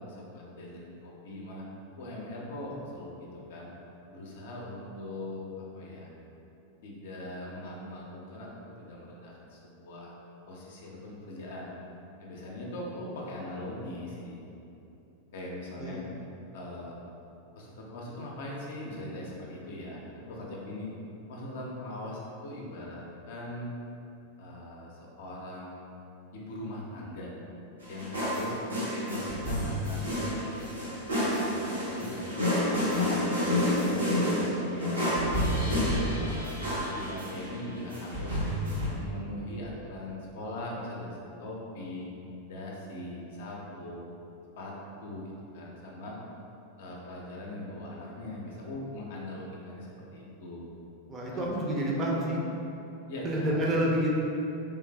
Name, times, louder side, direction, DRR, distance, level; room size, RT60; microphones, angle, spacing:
voice 1, 0.0-1.7 2.0-3.7 4.1-6.1 6.8-8.5 8.8-10.1 10.5-11.7 12.2-14.4 15.3-16.0 16.5-16.9 17.6-20.9 21.3-23.7 24.4-25.9 26.3-27.3 27.9-28.6 29.0-30.4 30.8-32.2 32.6-33.3 33.7-35.1 35.4-35.7 36.1-38.4 38.9-42.1 42.5-44.0 44.6-46.2 46.8-50.6 51.3-51.5 53.1-53.6, left 1 dB, 55° left, -3 dB, 0.5 m, -40 dB
sound 1, 27.8-38.9, left 1 dB, 80° right, 0.9 m, -29 dB
voice 2, 51.1-52.4 53.2-54.1, right 1 dB, 25° right, -2 dB, 0.5 m, -28 dB
3.4 x 3.1 x 2.2 m, 2.9 s
figure-of-eight pair, 90°, 0 cm